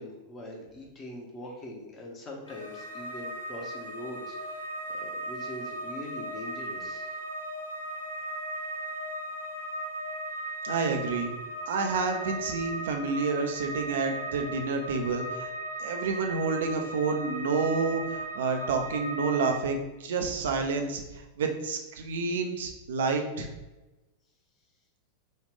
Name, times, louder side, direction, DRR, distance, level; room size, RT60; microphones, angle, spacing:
voice 1, 0.0-7.1 16.0-16.1, left 1 dB, 25° left, -1 dB, 0.9 m, -42 dB
sound 1, 2.5-19.6, right 1 dB, 70° left, 0.6 m, -37 dB
voice 2, 10.6-11.3 11.7-15.5 15.8-21.0 21.4-23.5, right 4 dB, 60° right, 4 dB, 0.5 m, -29 dB
4.1 x 2.4 x 3.4 m, 1.1 s
figure-of-eight pair, 90°, 0 cm